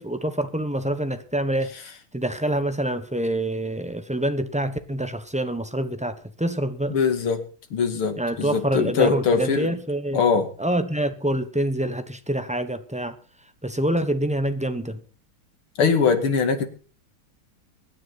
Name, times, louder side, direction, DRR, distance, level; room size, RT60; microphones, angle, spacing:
voice 1, 0.0-1.7 2.1-7.0 8.2-10.2 10.6-13.2 13.6-15.0, right 1 dB, 10° right, 0.4 m, -26 dB
voice 2, 6.9-7.4 7.7-9.7 10.1-10.5 15.8-16.6, left 5 dB, 85° left, 3.0 m, -22 dB
24.0 x 9.9 x 4.2 m
omnidirectional pair, 2.3 m